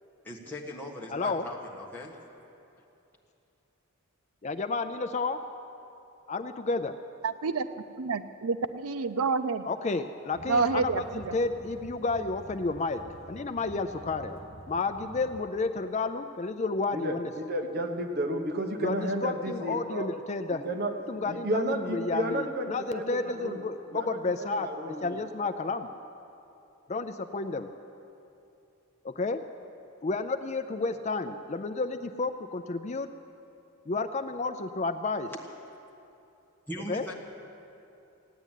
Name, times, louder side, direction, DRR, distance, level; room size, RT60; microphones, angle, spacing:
voice 1, 0.2-2.2 36.7-37.1, left 1 dB, 10° left, -2 dB, 1.5 m, -39 dB
voice 2, 1.1-1.5 4.4-5.4 6.3-6.9 9.7-17.3 18.8-20.7 21.1-25.9 26.9-27.7 29.0-29.5 30.0-33.1 33.9-35.3 36.9-37.1, left 3 dB, 30° left, 9 dB, 0.4 m, -31 dB
voice 3, 7.2-7.7 8.0-9.7 10.5-11.4, right 4 dB, 85° right, 11 dB, 0.6 m, -28 dB
sound 1, 10.3-15.4, right 1 dB, 25° right, 0.6 m, -48 dB
voice 4, 16.9-20.1 20.6-20.9 21.3-23.6 23.9-25.3, right 1 dB, 45° right, 3 dB, 1.2 m, -32 dB
16.5 x 9.4 x 9.1 m, 2.8 s
head